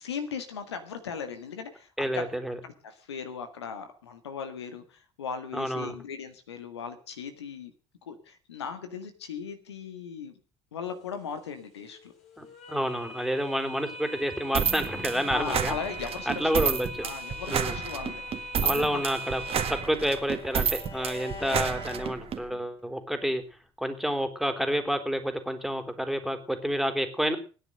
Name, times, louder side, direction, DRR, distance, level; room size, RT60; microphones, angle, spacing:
voice 1, 0.0-1.9 2.1-2.3 2.6-7.7 8.1-10.3 10.7-12.1 15.3-16.8 17.0-19.0, left 6 dB, 80° left, 8 dB, 1.7 m, -38 dB
voice 2, 2.0-2.6 5.5-5.9 12.4-15.8 16.3-17.1 17.5-17.8 18.6-19.4 19.7-23.4 23.8-27.4, equal, ahead, 7 dB, 3.4 m, -29 dB
sound 1, 10.9-19.8, right 1 dB, 55° left, 5.7 m, -41 dB
sound 2, 14.5-22.4, right 7 dB, 45° right, 1.9 m, -30 dB
Bowed string instrument, 18.7-22.8, left 2 dB, 40° left, 7.7 m, -45 dB
18.0 x 9.9 x 6.5 m, 0.37 s
figure-of-eight pair, 55°, 14 cm